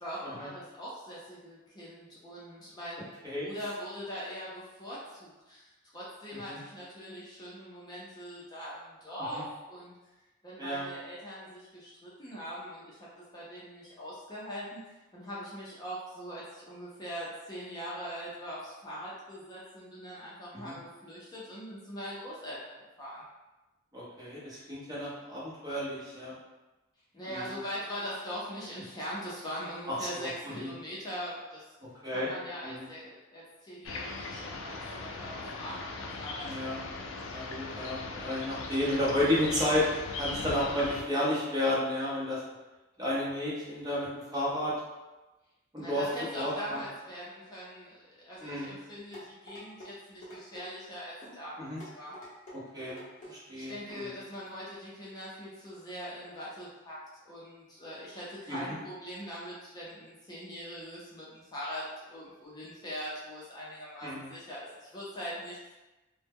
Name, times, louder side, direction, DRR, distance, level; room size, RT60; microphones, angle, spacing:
voice 1, 0.0-3.1 3.4-9.9 10.4-13.0 13.3-23.2 27.1-31.7 32.1-36.5 45.8-52.2 53.2-57.0 57.3-65.7, equal, 20° left, -7 dB, 0.5 m, -42 dB
voice 2, 10.6-10.9 20.5-20.7 23.9-26.3 27.3-27.4 29.9-30.7 32.0-32.3 32.6-32.8 36.4-36.8 37.3-42.4 43.0-44.7 45.7-46.0 46.3-46.8 48.4-48.7 51.6-51.8 52.7-53.0 53.2-54.1 58.5-58.8 64.0-64.3, left 1 dB, 20° right, -7 dB, 0.7 m, -32 dB
sound 1, 33.8-41.0, left 3 dB, 75° left, 0.3 m, -39 dB
sound 2, 49.1-49.9 50.2-50.7 51.2-51.4 51.8-52.6 52.9-53.3 53.9-54.1 54.5-54.6, equal, 40° left, 0.8 m, -47 dB
2.0 x 2.0 x 3.4 m, 1.1 s
head